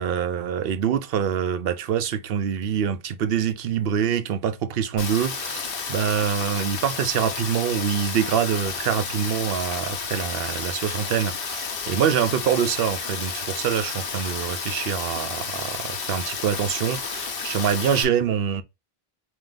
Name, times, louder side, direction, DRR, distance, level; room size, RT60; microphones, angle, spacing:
voice 1, 0.0-18.6, right 8 dB, 70° right, 0.8 m, -25 dB
Rain, 5.0-18.0, left 5 dB, 60° left, 1.0 m, -31 dB
4.3 x 2.8 x 3.8 m
omnidirectional pair, 1.1 m